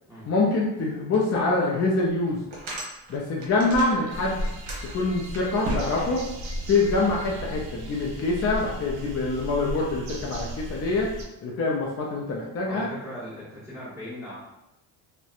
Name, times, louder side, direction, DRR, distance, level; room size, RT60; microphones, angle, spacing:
voice 1, 0.3-2.4 3.1-4.4 4.8-6.2 6.7-11.1 11.4-12.9, left 3 dB, 35° left, -3 dB, 0.4 m, -25 dB
sound 1, 1.1-1.2 1.7-1.8 2.3-4.1 4.4-6.8, right 1 dB, 60° right, 0.9 m, -34 dB
sound 2, 4.1-11.2, equal, 85° right, 0.6 m, -36 dB
voice 2, 12.7-14.3, equal, 5° right, -13 dB, 1.3 m, -38 dB
2.7 x 2.1 x 2.4 m, 0.91 s
cardioid pair, 125°, 44 cm